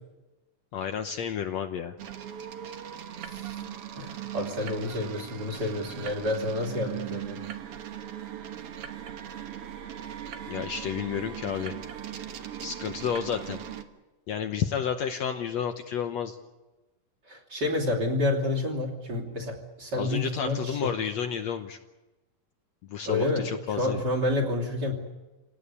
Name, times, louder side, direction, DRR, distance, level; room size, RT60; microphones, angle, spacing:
voice 1, 0.7-1.9 10.5-11.8 12.6-13.6 14.3-16.4 20.0-21.8 22.9-24.0, left 8 dB, 65° left, 6 dB, 1.9 m, -31 dB
sound 1, 2.0-13.8, right 10 dB, 55° right, 1.9 m, -39 dB
voice 2, 3.3-3.6 4.0-7.4 17.3-20.9 23.0-24.9, left 2 dB, 30° right, -1 dB, 3.4 m, -29 dB
27.5 x 18.0 x 8.4 m, 1.1 s
omnidirectional pair, 3.7 m